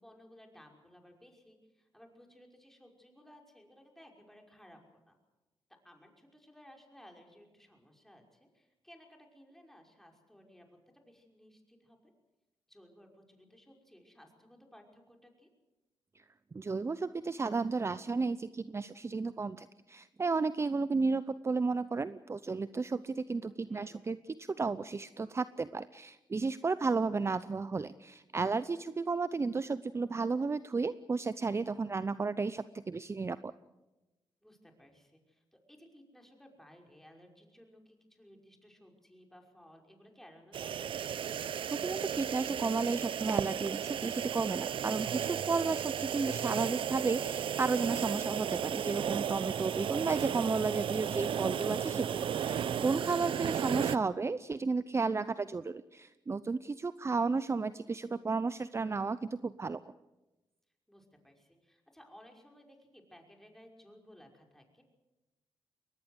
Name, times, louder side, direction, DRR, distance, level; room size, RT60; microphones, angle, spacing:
voice 1, 0.0-5.2 5.8-12.1 12.7-15.5 23.5-24.0 34.4-41.0 60.9-64.8, equal, 5° left, 2 dB, 5.7 m, -58 dB
voice 2, 16.5-33.5 41.6-59.8, right 4 dB, 30° right, 15 dB, 0.7 m, -33 dB
sound 1, 40.5-54.0, right 8 dB, 70° right, 0.7 m, -34 dB
22.5 x 19.0 x 8.0 m, 1.0 s
cardioid pair, 70°, 9 cm